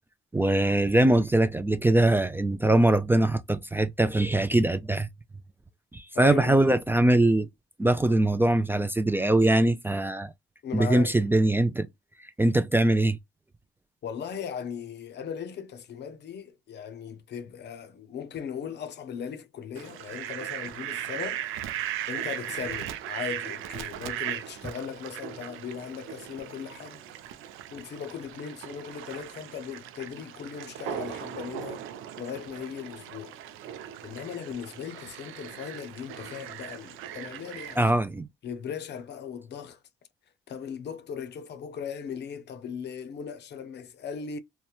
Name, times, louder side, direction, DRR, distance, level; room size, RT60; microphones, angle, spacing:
voice 1, 0.3-5.1 5.9-7.5 7.8-10.3 10.7-11.9 12.4-13.2 37.8-38.3, right 1 dB, 10° right, 0.4 m, -22 dB
voice 2, 6.1-6.6 10.6-11.1 14.0-21.5 22.1-27.0 27.7-31.8 32.2-33.4 34.0-37.8 38.4-39.8 40.5-44.4, left 7 dB, 60° left, 0.6 m, -38 dB
Fowl, 19.8-37.9, right 11 dB, 90° right, 0.4 m, -38 dB
2.9 x 2.1 x 2.3 m
cardioid pair, 90°, 20 cm